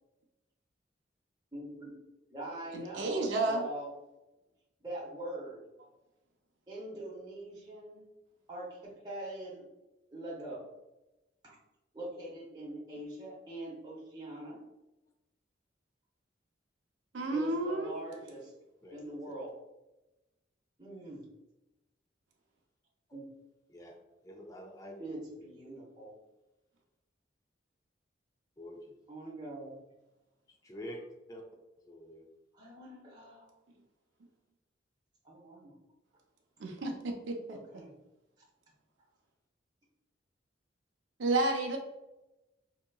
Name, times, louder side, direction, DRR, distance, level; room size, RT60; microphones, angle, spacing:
voice 1, 1.5-2.0 2.3-3.9 4.8-5.6 6.7-8.0 8.5-9.7 10.1-10.6 11.4-11.6 11.9-14.6 17.3-18.5 18.9-19.5 20.8-21.2 23.1-23.3 25.0-26.1 29.1-29.8 32.5-33.5 35.2-35.7 37.5-37.9, right 1 dB, 20° right, -6 dB, 0.7 m, -43 dB
voice 2, 2.7-3.7 17.1-17.9 36.6-37.6 41.2-41.8, right 2 dB, 85° right, 2 dB, 0.6 m, -31 dB
voice 3, 18.8-19.1 23.7-24.0 24.2-25.7 28.6-28.9 30.5-31.0 31.3-31.4 31.9-32.3, equal, 20° left, 1 dB, 0.4 m, -47 dB
3.8 x 2.8 x 2.3 m, 0.99 s
head